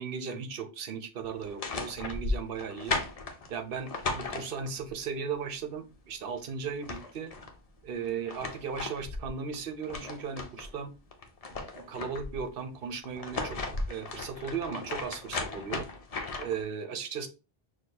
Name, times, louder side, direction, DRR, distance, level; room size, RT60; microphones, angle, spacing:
voice 1, 0.0-3.0 3.5-7.3 7.8-10.9 11.5-13.6 13.9-15.9 16.4-17.3, right 6 dB, 65° right, 7 dB, 0.8 m, -36 dB
sound 1, 1.4-4.9 6.3-6.4 6.7-7.5 8.0-10.7 11.1-12.4 13.0-16.6, left 3 dB, 40° left, 0.7 m, -36 dB
6.2 x 2.3 x 2.8 m, 0.31 s
omnidirectional pair, 1.1 m